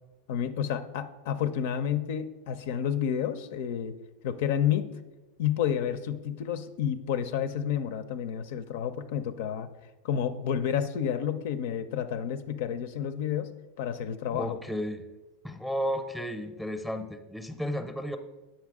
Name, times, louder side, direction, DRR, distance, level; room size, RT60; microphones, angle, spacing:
voice 1, 0.3-4.0 4.2-4.9 5.4-9.7 10.0-13.5 13.8-14.6, left 9 dB, 70° left, 11 dB, 0.4 m, -30 dB
voice 2, 14.3-15.0 15.4-18.2, equal, ahead, 8 dB, 0.6 m, -33 dB
7.5 x 5.7 x 3.6 m, 1.1 s
hypercardioid pair, 105°, 0 cm